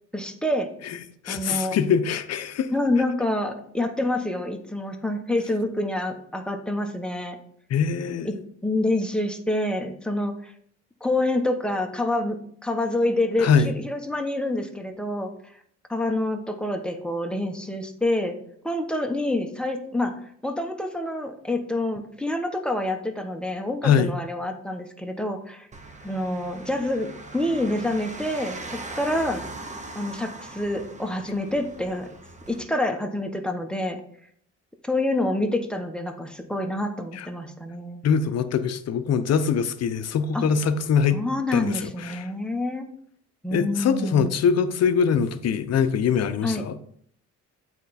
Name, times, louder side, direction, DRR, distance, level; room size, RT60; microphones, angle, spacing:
voice 1, 0.1-0.7 1.3-1.8 2.7-7.4 8.2-8.4 8.6-10.5 11.0-15.3 15.9-18.3 18.6-20.1 20.4-25.7 26.0-29.5 29.9-32.1 32.5-34.0 34.8-38.0 40.3-40.5 41.1-42.9 43.4-44.4 46.4-46.6, left 1 dB, 5° left, 4 dB, 1.0 m, -27 dB
voice 2, 1.2-2.7 7.7-8.4 13.4-13.7 23.8-24.1 37.1-37.3 38.0-41.2 41.5-42.3 43.5-46.8, left 6 dB, 55° left, 11 dB, 0.7 m, -23 dB
sound 1, 25.7-32.6, right 2 dB, 25° right, 0.9 m, -40 dB
8.2 x 4.4 x 4.1 m, 0.65 s
cardioid pair, 90°, 30 cm